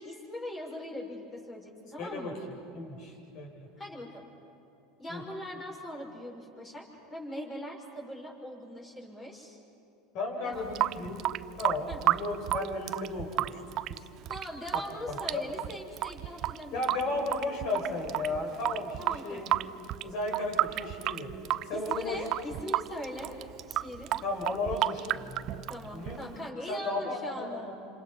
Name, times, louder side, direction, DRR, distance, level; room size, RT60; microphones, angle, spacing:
voice 1, 0.0-2.4 3.8-4.3 5.0-6.8 7.1-9.6 10.4-10.7 11.9-12.0 14.3-17.0 19.0-19.7 21.7-23.3 23.7-24.1 25.7-27.7, left 1 dB, 25° left, -1 dB, 6.2 m, -41 dB
voice 2, 2.0-2.3 2.7-3.7 5.1-5.2 10.1-11.2 11.6-13.6 13.9-14.0 14.7-14.8 15.1-15.4 16.7-19.5 20.0-21.3 21.7-22.2 24.2-26.3 26.7-27.7, left 2 dB, 55° left, 0 dB, 7.3 m, -34 dB
Water tap faucet / Sink (filling or washing) / Drip, 10.5-26.5, right 14 dB, 50° right, 0.6 m, -32 dB
28.0 x 27.0 x 5.8 m, 2.8 s
supercardioid pair, 115°, 0 cm